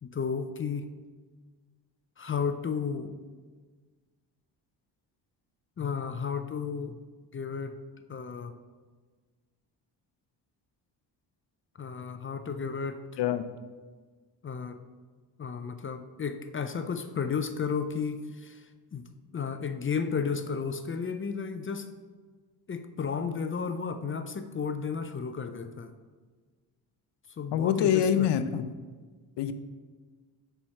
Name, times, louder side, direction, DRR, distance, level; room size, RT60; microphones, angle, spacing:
voice 1, 0.0-0.9 2.2-3.1 5.8-7.0 7.3-7.7 8.1-8.5 11.8-13.0 14.4-14.8 15.4-18.6 18.9-19.0 19.3-21.9 22.7-25.9 27.4-28.3, left 6 dB, 30° left, 8 dB, 0.5 m, -33 dB
voice 2, 13.2-13.5 27.5-28.7 29.4-29.5, left 9 dB, 65° left, 11 dB, 0.7 m, -25 dB
6.2 x 4.5 x 5.7 m, 1.4 s
cardioid pair, 75°, 44 cm